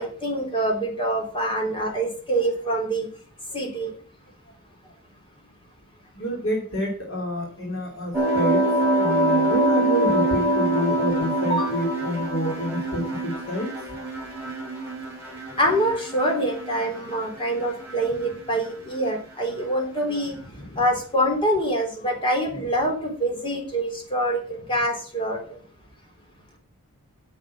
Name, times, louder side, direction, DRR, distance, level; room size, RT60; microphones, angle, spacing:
voice 1, 0.0-3.1 3.5-3.9 11.5-11.7 15.6-20.4 20.8-24.4 24.7-25.4, right 1 dB, 25° left, 1 dB, 3.6 m, -25 dB
voice 2, 6.1-8.6 9.0-13.7 20.5-20.8, equal, 60° left, -1 dB, 3.0 m, -28 dB
sound 1, 8.1-17.3 17.6-18.3, right 1 dB, 10° right, 5.0 m, -25 dB
9.1 x 7.2 x 7.2 m, 0.40 s
head